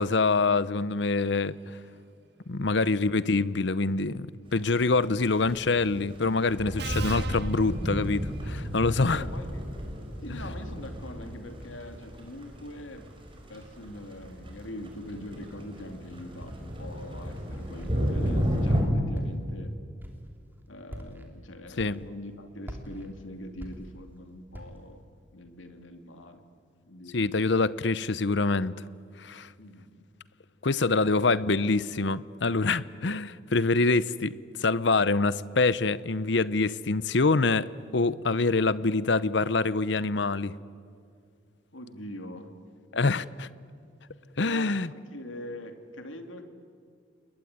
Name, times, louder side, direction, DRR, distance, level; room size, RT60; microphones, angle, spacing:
voice 1, 0.0-1.8 2.5-9.2 10.3-10.4 21.8-22.0 27.1-28.8 29.2-29.5 30.6-40.5 42.9-43.5 44.4-44.9, left 3 dB, 65° left, 0.8 m, -25 dB
sound 1, 4.5-18.8, equal, 25° right, 4.9 m, -33 dB
Subway metro underground, 5.3-5.6 6.8-8.5, right 5 dB, 55° right, 1.4 m, -41 dB
voice 2, 9.1-9.5 10.2-13.1 13.5-19.8 20.7-25.0 25.3-26.4 26.9-27.2 29.6-30.1 41.7-42.5 42.9-43.2 44.4-46.4, left 1 dB, 85° left, 2.7 m, -43 dB
Walk footsteps, 16.4-16.8 17.4-17.9 18.2-18.7 19.1-19.6 20.0-20.3 20.8-21.3 21.8-22.3 22.6-24.2 24.5-24.9, equal, 10° right, 3.0 m, -43 dB
29.5 x 21.0 x 9.6 m
head